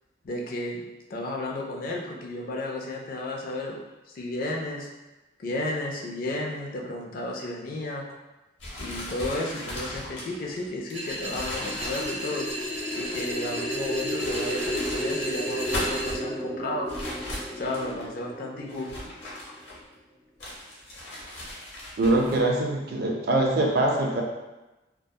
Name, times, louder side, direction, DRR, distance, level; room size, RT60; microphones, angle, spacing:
voice 1, 0.2-0.8 1.1-3.8 4.1-4.9 5.4-8.0 8.8-12.5 12.9-16.9 17.6-18.9, left 1 dB, 50° left, -1 dB, 0.4 m, -33 dB
sound 1, 8.6-13.4 14.0-15.1 15.5-16.2 16.9-18.1 18.7-20.0 20.4-22.4, left 1 dB, 85° left, 0.8 m, -38 dB
sound 2, 10.9-16.1, equal, 10° right, 0.8 m, -35 dB
sound 3, 11.5-19.6, equal, 25° left, 0.8 m, -34 dB
voice 2, 22.0-24.2, right 2 dB, 55° right, 0 dB, 0.4 m, -23 dB
2.6 x 2.2 x 2.2 m, 1.0 s
head